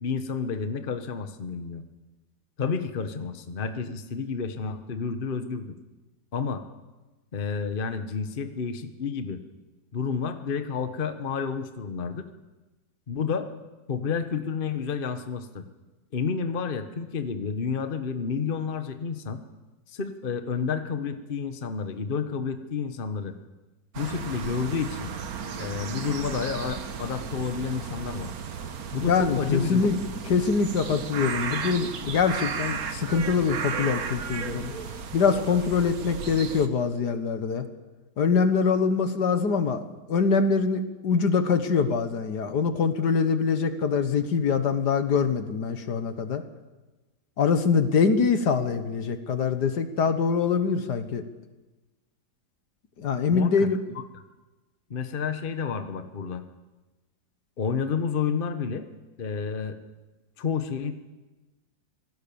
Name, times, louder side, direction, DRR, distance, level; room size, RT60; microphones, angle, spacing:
voice 1, 0.0-1.8 2.6-5.7 6.3-6.6 7.3-9.4 9.9-12.3 13.1-13.5 13.9-15.6 16.1-19.4 19.9-23.3 24.0-25.1 25.6-28.3 28.9-29.9 53.3-54.0 54.9-56.4 57.6-58.9 59.2-59.8 60.4-60.9, left 5 dB, 35° left, 9 dB, 1.3 m, -30 dB
sound 1, 23.9-36.7, right 6 dB, 60° right, 1.6 m, -34 dB
voice 2, 29.1-30.0 30.3-34.7 35.1-37.6 38.2-46.4 47.4-51.2 53.0-53.8, left 5 dB, 70° left, 10 dB, 1.9 m, -24 dB
26.0 x 18.0 x 7.1 m, 1.2 s
omnidirectional pair, 1.9 m